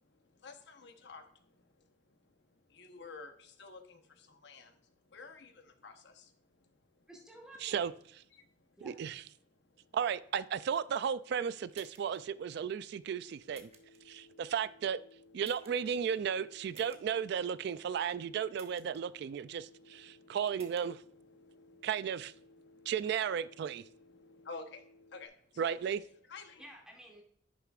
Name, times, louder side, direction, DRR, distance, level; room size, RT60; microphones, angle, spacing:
voice 1, 0.0-7.1 8.3-8.8 9.5-10.0 13.6-14.4 17.8-17.9 18.9-20.4 21.1-21.9 22.4-22.9 23.6-25.8 26.2-26.7, left 4 dB, 65° left, 6 dB, 1.0 m, -54 dB
voice 2, 7.1-7.9 8.8-8.9 26.6-27.2, right 1 dB, 5° right, -1 dB, 2.3 m, -52 dB
voice 3, 7.6-7.9 8.8-9.2 9.9-13.7 14.1-15.0 15.3-21.0 21.8-22.3 22.9-23.8 25.6-26.0, right 7 dB, 60° right, 16 dB, 0.3 m, -34 dB
sound 1, 11.7-12.2 13.5-14.0 15.4-15.9 16.7-17.0 18.5-19.0 20.5-20.8, right 5 dB, 35° right, 1.2 m, -56 dB
Telephone, 13.1-25.3, left 2 dB, 40° left, 0.7 m, -61 dB
10.5 x 6.8 x 2.4 m, 0.64 s
head